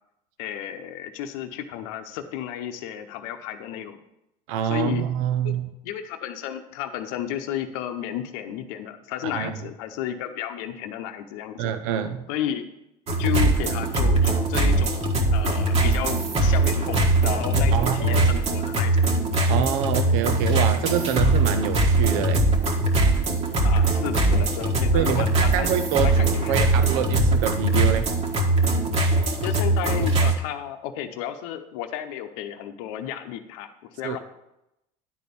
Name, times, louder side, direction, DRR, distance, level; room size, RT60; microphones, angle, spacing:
voice 1, 0.4-4.0 4.6-5.0 5.4-5.6 5.8-11.7 12.3-12.7 13.2-19.1 23.5-25.7 26.0-26.5 29.4-34.2, left 10 dB, 85° left, 7 dB, 0.8 m, -32 dB
voice 2, 4.5-5.7 9.2-9.6 11.6-12.3 17.7-18.3 19.5-22.5 24.9-28.1 34.0-34.2, right 9 dB, 85° right, 10 dB, 0.7 m, -26 dB
sound 1, 13.1-30.3, right 2 dB, 40° right, 1.5 m, -21 dB
10.5 x 4.2 x 6.9 m, 0.86 s
cardioid pair, 125°, 17 cm